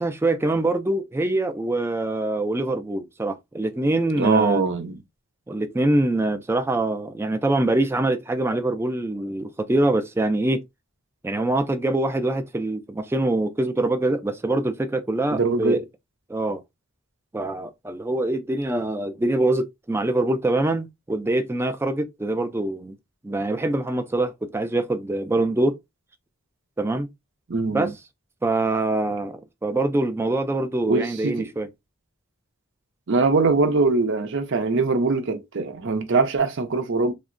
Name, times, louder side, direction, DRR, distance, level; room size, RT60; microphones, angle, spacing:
voice 1, 0.0-4.6 5.5-10.6 11.2-15.8 16.3-16.6 17.3-22.9 23.2-25.8 26.8-27.1 27.7-27.9 28.4-31.7, right 2 dB, 10° right, 0.3 m, -24 dB
voice 2, 4.2-5.0 15.3-15.8 27.5-27.9 30.9-31.5 33.1-37.1, right 3 dB, 60° right, 0.6 m, -22 dB
3.6 x 2.1 x 2.5 m
head